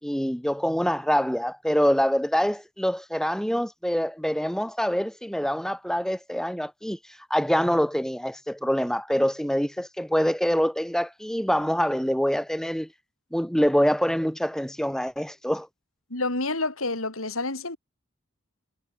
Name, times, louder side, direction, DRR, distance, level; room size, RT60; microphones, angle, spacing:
voice 1, 0.0-7.0 7.3-12.9 13.3-15.7, equal, ahead, 2.9 m, -25 dB
voice 2, 16.1-17.8, left 2 dB, 75° left, 5.1 m, -28 dB
head